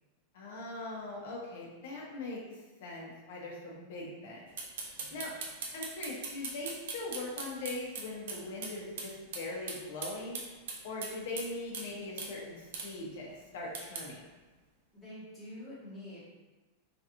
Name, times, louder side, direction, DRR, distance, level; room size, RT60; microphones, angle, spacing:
voice 1, 0.3-4.5 4.9-5.3 5.7-10.4 10.8-14.2, left 2 dB, 60° left, -2 dB, 1.0 m, -41 dB
voice 2, 3.7-4.3 5.0-5.2 14.9-16.2, left 1 dB, 10° left, -11 dB, 1.3 m, -48 dB
sound 1, 4.6-8.7 9.0-9.1 9.3-9.4 9.7-11.5 11.7-11.9 12.2-12.3 12.7-12.9 13.7-14.0, right 5 dB, 65° right, 0.7 m, -39 dB
3.9 x 2.6 x 2.9 m, 1.2 s
supercardioid pair, 175°, 0 cm